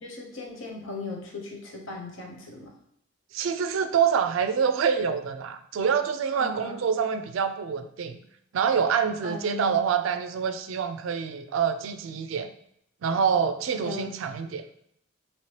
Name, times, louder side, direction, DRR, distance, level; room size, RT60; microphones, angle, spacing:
voice 1, 0.0-2.7 6.3-6.8 9.2-9.7 13.8-14.1 14.4-14.5, left 3 dB, 70° left, 0 dB, 0.8 m, -37 dB
voice 2, 3.3-8.2 8.5-12.5 13.0-14.6, right 7 dB, 75° right, 9 dB, 0.3 m, -26 dB
3.1 x 2.9 x 2.9 m, 0.71 s
head